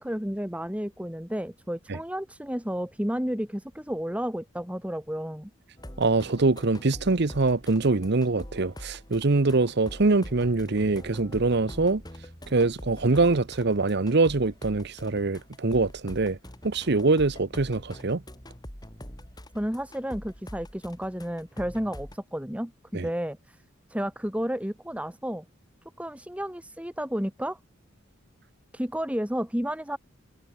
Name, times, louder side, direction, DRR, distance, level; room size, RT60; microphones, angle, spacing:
voice 1, 0.0-5.5 19.5-23.6 23.9-25.5 26.0-27.6 28.7-30.0, equal, 5° right, 2.7 m, -32 dB
sound 1, 5.8-22.2, equal, 20° left, 5.7 m, -44 dB
voice 2, 6.0-12.0 12.5-16.4 16.6-18.2 22.9-23.1, right 3 dB, 55° right, 0.9 m, -24 dB
head